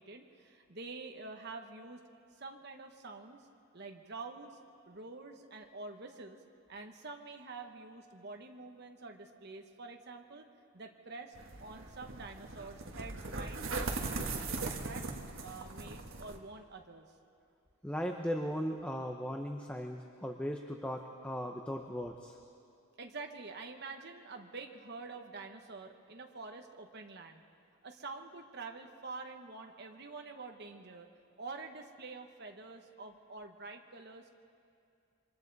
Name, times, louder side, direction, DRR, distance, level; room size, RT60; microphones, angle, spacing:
voice 1, 0.0-2.0 2.3-3.5 3.7-4.6 4.9-6.4 6.7-10.5 10.7-17.1 23.0-27.4 27.8-31.1 31.4-34.4, right 3 dB, 50° right, 3 dB, 1.2 m, -47 dB
sound 1, 11.3-16.4, right 3 dB, 65° right, 1.6 m, -39 dB
voice 2, 17.8-22.4, equal, 5° left, 3 dB, 0.7 m, -37 dB
27.5 x 24.0 x 4.1 m, 2.5 s
head